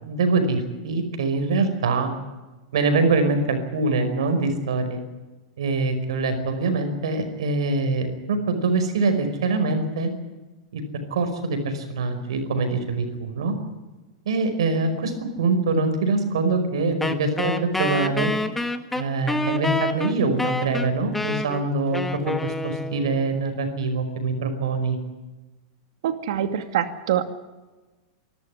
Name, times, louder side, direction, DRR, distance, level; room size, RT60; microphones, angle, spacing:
voice 1, 0.0-2.1 2.7-5.0 5.6-10.1 10.7-10.8 11.1-13.5 14.3-18.3 18.9-25.0, right 3 dB, 90° right, 7 dB, 5.3 m, -24 dB
Wind instrument woodwind instrument, 17.0-23.3, left 1 dB, 5° left, 1.5 m, -27 dB
voice 2, 26.0-27.3, right 10 dB, 75° right, 8 dB, 2.4 m, -24 dB
25.5 x 13.5 x 9.8 m, 1.2 s
supercardioid pair, 140°, 3 cm